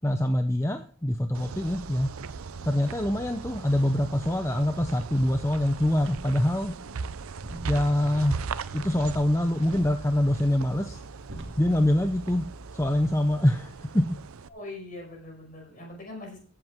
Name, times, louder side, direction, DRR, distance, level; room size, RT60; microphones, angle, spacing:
voice 1, 0.0-2.1 2.6-6.7 7.7-8.4 8.7-11.0 11.6-12.4 12.7-14.1, left 1 dB, 15° left, 6 dB, 0.6 m, -25 dB
sound 1, 1.3-14.5, right 5 dB, 85° right, 0.6 m, -39 dB
sound 2, 9.7-13.4, right 1 dB, 60° right, 2.3 m, -45 dB
voice 2, 14.5-16.4, left 2 dB, 40° left, 0 dB, 5.3 m, -43 dB
15.0 x 8.0 x 3.6 m, 0.41 s
head